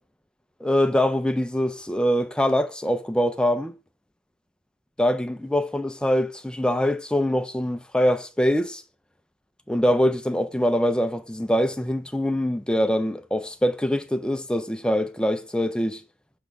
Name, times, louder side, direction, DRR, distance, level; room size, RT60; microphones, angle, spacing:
voice 1, 0.6-3.7 5.0-8.8 9.7-16.0, equal, 5° left, 0.3 m, -23 dB
6.9 x 3.5 x 5.8 m
head